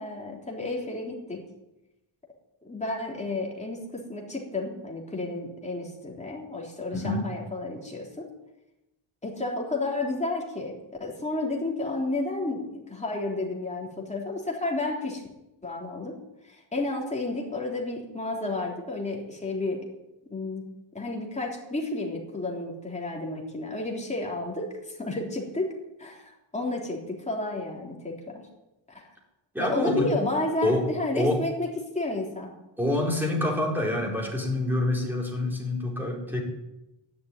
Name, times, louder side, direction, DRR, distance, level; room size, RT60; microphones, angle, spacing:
voice 1, 0.0-1.5 2.6-8.3 9.2-15.2 15.6-16.2 16.5-19.9 20.3-20.7 20.9-25.7 26.0-28.5 28.9-29.1 29.6-32.5, left 2 dB, 15° left, -1 dB, 3.4 m, -31 dB
voice 2, 6.9-7.2 29.5-30.1 30.6-30.8 31.1-31.4 32.8-36.4, left 1 dB, 5° right, -1 dB, 4.4 m, -26 dB
12.5 x 11.0 x 9.9 m, 0.95 s
wide cardioid pair, 165°, 48 cm